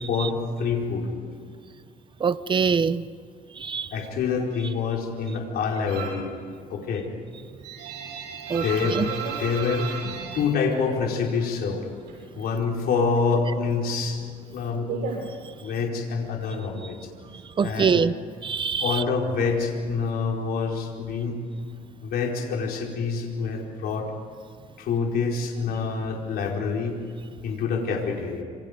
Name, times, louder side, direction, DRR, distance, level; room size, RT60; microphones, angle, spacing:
voice 1, 0.1-1.1 3.9-6.3 6.7-7.1 8.6-9.1 9.4-9.9 10.3-11.9 12.3-14.2 14.5-14.9 15.6-17.0 17.6-18.0 18.8-21.4 22.0-24.1 24.8-27.0 27.4-28.4, left 5 dB, 65° left, 0 dB, 4.8 m, -26 dB
voice 2, 2.2-3.0 3.5-3.9 8.5-8.6 8.9-9.1 17.6-18.1 18.4-19.0, right 6 dB, 30° right, 14 dB, 0.8 m, -23 dB
sound 1, 5.9-6.3 6.7-11.5 11.8-12.8 13.1-15.9, right 6 dB, 85° right, 7.6 m, -35 dB
27.5 x 26.5 x 5.3 m, 2.2 s
cardioid pair, 110°, 17 cm